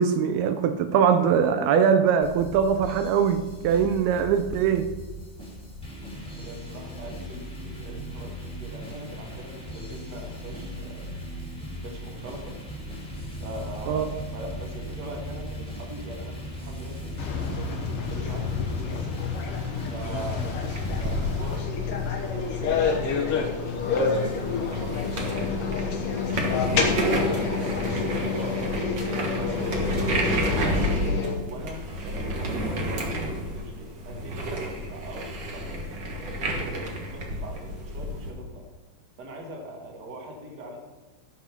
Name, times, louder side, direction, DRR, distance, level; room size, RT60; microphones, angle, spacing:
voice 1, 0.0-4.9 13.9-14.1, right 7 dB, 80° right, 8 dB, 2.4 m, -22 dB
sound 1, 2.2-21.6, equal, ahead, 1.5 m, -37 dB
voice 2, 6.4-11.2 11.8-12.6 13.4-19.0 19.9-21.8 22.1-26.2 26.9-28.7 29.0-30.8 31.4-38.6 39.2-40.8, right 1 dB, 45° right, 1 dB, 1.4 m, -42 dB
sound 2, 17.2-31.3, left 5 dB, 80° left, 1.3 m, -28 dB
Wheels Rolling Wooden Floor, 20.7-38.3, right 1 dB, 60° right, 1.1 m, -31 dB
15.0 x 5.9 x 5.8 m, 1.2 s
omnidirectional pair, 4.7 m